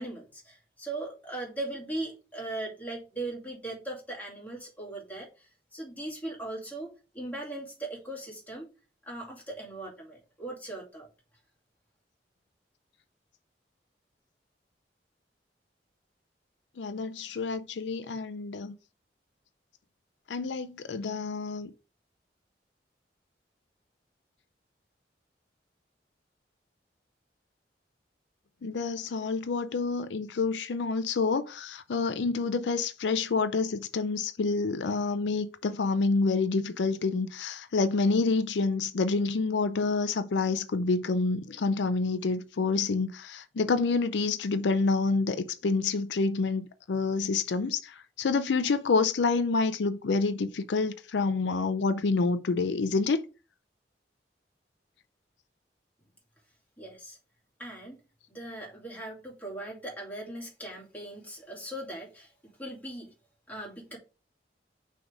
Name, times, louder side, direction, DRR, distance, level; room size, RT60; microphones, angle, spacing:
voice 1, 0.0-8.7 9.1-11.1 56.8-57.2 57.6-58.0 58.3-62.3 62.6-63.1 63.5-64.0, right 2 dB, 10° left, 2.4 m, -39 dB
voice 2, 16.8-18.7 20.3-21.7 28.6-47.9 48.2-53.2, left 4 dB, 85° left, 0.5 m, -28 dB
6.1 x 3.4 x 5.0 m
head